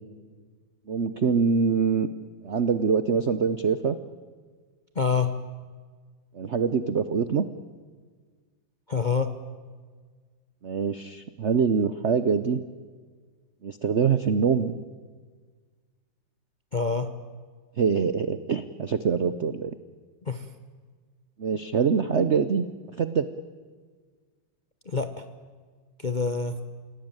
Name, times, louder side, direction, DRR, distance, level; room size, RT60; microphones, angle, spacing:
voice 1, 0.9-2.1 2.4-4.0 6.3-7.5 10.6-12.6 13.6-14.8 17.8-19.7 21.4-22.6 23.0-23.3, right 6 dB, 65° right, 12 dB, 0.6 m, -24 dB
voice 2, 5.0-5.3 8.9-9.3 16.7-17.1 20.3-20.4 24.9-25.2 26.0-26.6, left 5 dB, 40° left, 8 dB, 0.6 m, -26 dB
28.0 x 17.5 x 8.9 m, 1.6 s
omnidirectional pair, 2.3 m